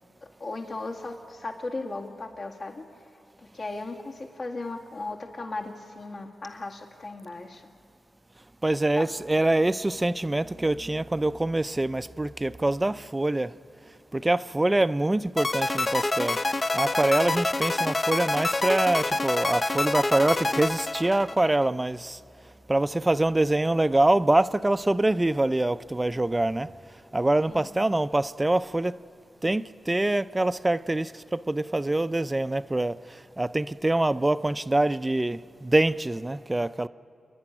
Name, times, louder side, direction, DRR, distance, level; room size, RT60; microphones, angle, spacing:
voice 1, 0.2-2.9 3.5-7.7 9.0-9.1 27.5-27.8, left 2 dB, 60° left, 2.0 m, -36 dB
voice 2, 8.6-13.5 14.1-16.4 16.7-22.2 22.7-26.7 27.1-29.0 29.4-36.9, right 2 dB, 20° right, 0.5 m, -25 dB
sound 1, 15.4-21.7, left 2 dB, 35° left, 0.5 m, -27 dB
28.5 x 11.0 x 10.0 m
cardioid pair, 65°, 0 cm